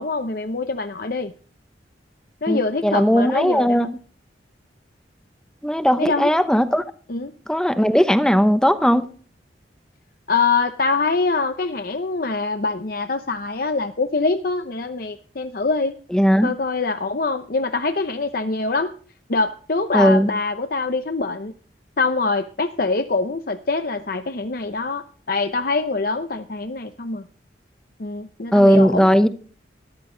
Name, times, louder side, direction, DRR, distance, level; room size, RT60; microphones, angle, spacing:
voice 1, 0.0-1.3 2.4-3.9 6.0-6.5 7.1-7.3 10.3-15.9 16.4-18.9 19.3-21.5 22.0-27.2 28.0-29.1, left 3 dB, 55° left, 0.8 m, -24 dB
voice 2, 2.5-3.9 5.6-6.8 7.5-9.0 16.1-16.5 19.9-20.3 28.5-29.3, equal, 5° left, 0.8 m, -17 dB
13.5 x 12.5 x 3.9 m
head